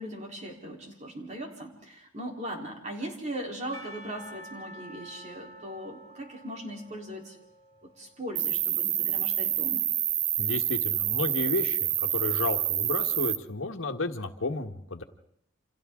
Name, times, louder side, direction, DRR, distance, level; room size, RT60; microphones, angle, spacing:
voice 1, 0.0-7.4 7.8-9.9, right 1 dB, 35° right, 0 dB, 3.8 m, -39 dB
Percussion / Church bell, 3.7-9.0, right 1 dB, 30° left, 3.4 m, -49 dB
Cricket, 8.4-13.4, right 11 dB, 85° right, 1.0 m, -27 dB
voice 2, 10.4-15.0, left 3 dB, 85° left, 6 dB, 1.5 m, -32 dB
29.0 x 27.0 x 3.8 m, 0.72 s
head